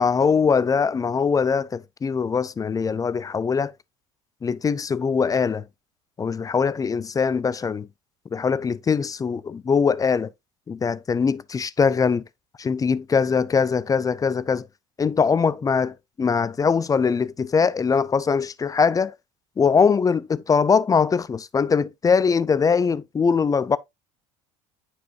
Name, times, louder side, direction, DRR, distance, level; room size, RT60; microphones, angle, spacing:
voice 1, 0.0-3.7 4.4-5.6 6.2-7.9 8.3-10.3 10.7-12.2 12.6-14.7 15.0-19.1 19.6-23.8, left 5 dB, 20° left, 0.5 m, -22 dB
9.2 x 4.7 x 2.6 m
hypercardioid pair, 65°, 17 cm